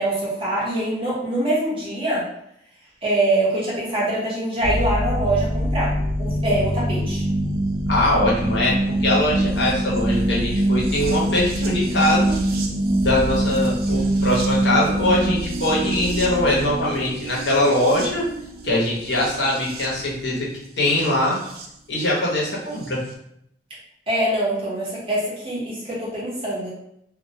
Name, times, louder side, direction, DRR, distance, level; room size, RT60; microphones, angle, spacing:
voice 1, 0.0-2.2 3.0-5.9 6.2-7.2 24.1-26.7, right 1 dB, 30° right, -7 dB, 0.9 m, -24 dB
sound 1, 4.6-21.7 22.8-22.9, right 1 dB, 55° right, 0.3 m, -24 dB
voice 2, 7.9-12.3 13.0-18.3 18.6-20.5 20.8-21.4 21.9-23.0, left 1 dB, 85° left, -5 dB, 0.8 m, -22 dB
2.2 x 2.1 x 2.8 m, 0.75 s
head